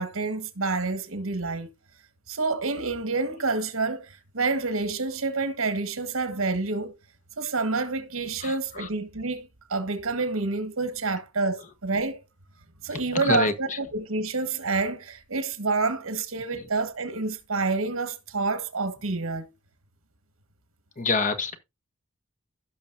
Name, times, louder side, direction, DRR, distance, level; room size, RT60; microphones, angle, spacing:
voice 1, 0.0-1.7 2.3-7.0 7.4-12.2 12.8-19.5, right 3 dB, 80° right, 1.5 m, -28 dB
voice 2, 8.4-8.9 12.9-13.8 16.5-16.6 21.0-21.6, left 4 dB, 40° left, 1.1 m, -27 dB
16.5 x 6.0 x 2.6 m
head